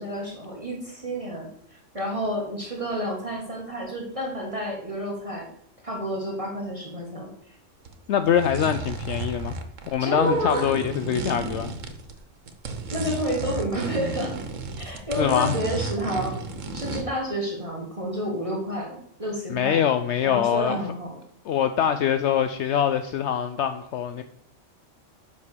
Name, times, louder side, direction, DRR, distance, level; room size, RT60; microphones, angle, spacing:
voice 1, 0.0-5.5 5.8-7.6 10.0-10.7 12.9-14.4 14.8-16.4 16.7-19.8 20.2-21.2, equal, 25° right, -2 dB, 1.9 m, -30 dB
sound 1, 7.9-8.0 8.2-12.2 12.5-17.1, right 3 dB, 80° right, 1.4 m, -33 dB
voice 2, 8.1-9.5 9.9-11.7 15.2-15.6 19.5-20.8 21.4-24.2, left 9 dB, 70° left, 9 dB, 0.8 m, -24 dB
8.2 x 5.3 x 6.7 m, 0.68 s
omnidirectional pair, 1.3 m